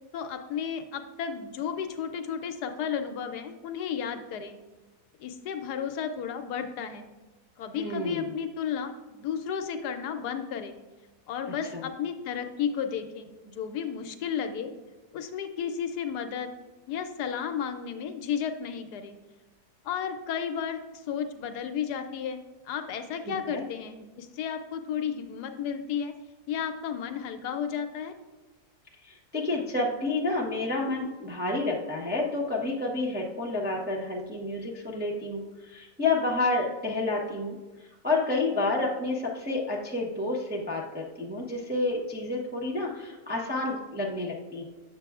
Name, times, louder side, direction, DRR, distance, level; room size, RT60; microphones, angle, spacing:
voice 1, 0.1-4.6 5.2-7.1 7.6-10.8 11.3-14.7 15.1-16.5 16.9-19.2 19.8-22.4 22.6-26.1 26.5-28.1, left 7 dB, 75° left, 7 dB, 1.1 m, -33 dB
voice 2, 7.8-8.2 11.5-11.9 23.3-23.6 29.0-37.6 38.0-44.6, left 2 dB, 10° right, -3 dB, 0.5 m, -30 dB
8.1 x 6.7 x 2.4 m, 1.2 s
omnidirectional pair, 1.8 m